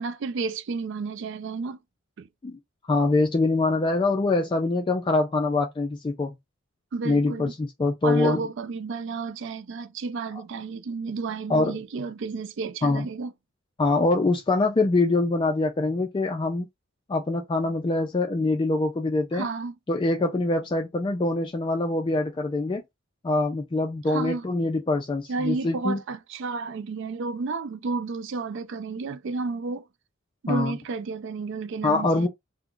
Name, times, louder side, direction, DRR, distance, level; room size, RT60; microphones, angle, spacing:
voice 1, 0.0-1.8 2.2-2.3 6.9-7.5 8.0-13.3 19.3-19.7 24.1-24.4 25.3-29.9 30.4-32.3, right 4 dB, 60° right, 0.4 m, -31 dB
voice 2, 2.9-6.4 7.0-8.4 11.5-11.8 12.8-13.1 13.8-16.7 17.1-19.5 19.9-22.8 23.2-26.0 30.5-30.8 31.8-32.3, left 2 dB, 25° left, 0.3 m, -24 dB
2.3 x 2.1 x 3.6 m
head